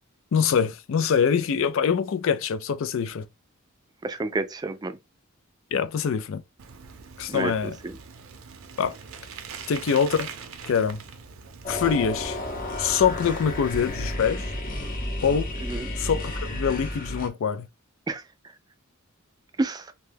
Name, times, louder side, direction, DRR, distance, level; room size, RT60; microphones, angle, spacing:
voice 1, 0.3-3.3 5.7-6.4 7.2-7.8 8.8-9.0 9.7-10.3 10.7-11.0 11.7-12.4 12.8-14.5 15.2-15.5 16.0-17.7, left 7 dB, 70° left, 0.4 m, -24 dB
voice 2, 4.0-4.9 7.3-8.0 15.6-15.9 18.1-18.2 19.6-19.9, right 3 dB, 20° right, 0.3 m, -29 dB
Bicycle, 6.6-14.1, right 6 dB, 75° right, 0.5 m, -43 dB
sound 1, 11.6-17.3, left 1 dB, 40° left, 0.8 m, -32 dB
2.7 x 2.2 x 3.3 m
head